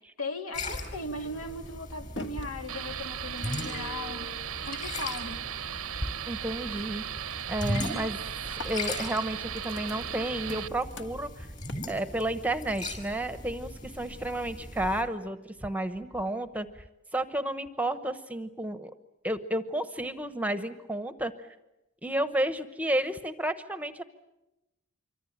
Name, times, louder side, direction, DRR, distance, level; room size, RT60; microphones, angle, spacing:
voice 1, 0.2-4.3 4.7-5.4, left 2 dB, 80° left, 4 dB, 2.8 m, -38 dB
sound 1, 0.5-15.0, left 1 dB, 35° left, 5.2 m, -39 dB
sound 2, 0.8-5.4 5.7-6.1 6.4-6.9 7.2-12.5, left 2 dB, 55° left, 1.6 m, -47 dB
sound 3, 2.7-10.7, right 9 dB, 85° right, 0.9 m, -37 dB
voice 2, 6.3-11.5 11.9-16.7 17.1-18.9 19.2-21.3 22.0-24.0, right 1 dB, 5° right, 10 dB, 0.9 m, -32 dB
26.5 x 24.5 x 8.8 m, 0.95 s
head